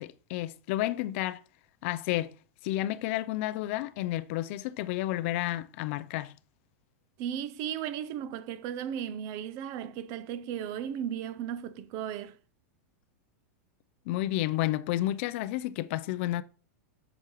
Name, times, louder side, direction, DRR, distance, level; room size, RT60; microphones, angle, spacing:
voice 1, 0.0-1.4 1.8-2.3 2.6-6.3 14.1-16.4, left 15 dB, 50° left, 0.5 m, -31 dB
voice 2, 7.2-12.4, right 9 dB, 40° right, 0.6 m, -35 dB
8.1 x 7.2 x 3.1 m
supercardioid pair, 150°, 8 cm